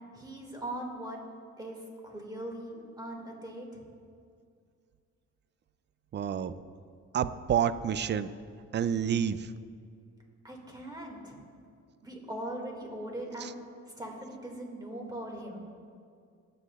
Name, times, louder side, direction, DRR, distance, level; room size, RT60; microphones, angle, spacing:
voice 1, 0.1-1.2 1.6-3.8 10.4-11.4 12.0-13.5 14.0-15.6, right 1 dB, 15° right, 0 dB, 2.2 m, -40 dB
voice 2, 6.1-6.5 7.1-8.3 8.7-9.5 13.4-13.5, right 8 dB, 35° right, 14 dB, 0.4 m, -29 dB
19.5 x 7.9 x 2.4 m, 2.3 s
cardioid pair, 90°, 30 cm